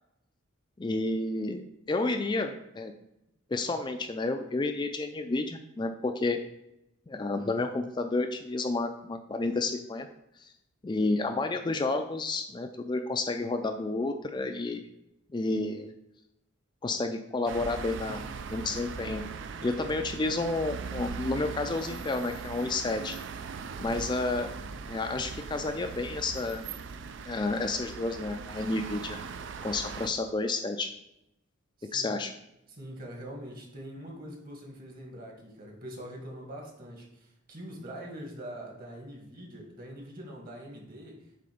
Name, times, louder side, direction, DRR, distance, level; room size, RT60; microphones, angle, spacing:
voice 1, 0.8-1.6 1.9-2.9 3.5-6.4 7.1-10.1 10.8-14.8 15.3-15.9 16.8-18.2 18.5-19.2 19.6-23.2 23.8-24.5 24.9-26.6 27.2-29.2 29.6-30.9 31.9-32.3, left 3 dB, 20° left, 5 dB, 0.3 m, -30 dB
sound 1, 17.5-30.1, right 5 dB, 60° right, 0.4 m, -40 dB
voice 2, 31.8-32.1 32.7-41.2, equal, 45° right, 0 dB, 1.7 m, -43 dB
7.7 x 3.3 x 5.1 m, 0.82 s
head